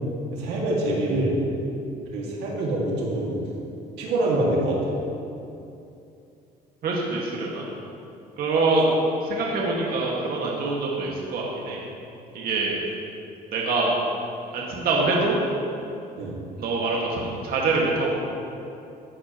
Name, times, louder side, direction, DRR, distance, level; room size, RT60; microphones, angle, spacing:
voice 1, 0.3-1.3 2.1-3.4 4.0-5.0 16.2-16.4, right 1 dB, 90° right, -3 dB, 2.1 m, -25 dB
voice 2, 6.8-7.6 8.4-8.9 9.2-11.8 12.3-12.8 13.5-14.0 14.5-15.4 16.6-18.1, right 3 dB, 65° right, -3 dB, 1.9 m, -24 dB
14.0 x 10.0 x 3.0 m, 2.7 s
cardioid pair, 110°, 17 cm